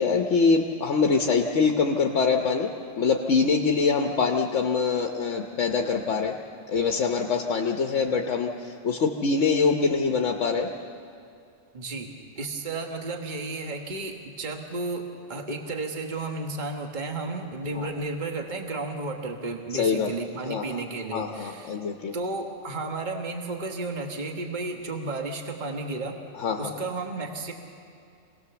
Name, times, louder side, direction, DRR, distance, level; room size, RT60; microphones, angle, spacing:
voice 1, 0.0-2.7 3.0-6.4 6.7-10.7 17.8-17.9 19.7-20.1 20.4-20.8 21.1-22.1 26.4-26.8, left 5 dB, 80° left, 2 dB, 1.3 m, -24 dB
voice 2, 11.7-21.8 22.1-26.2 26.6-27.5, right 3 dB, 40° right, 3 dB, 1.6 m, -33 dB
26.5 x 18.5 x 7.0 m, 2.5 s
omnidirectional pair, 1.2 m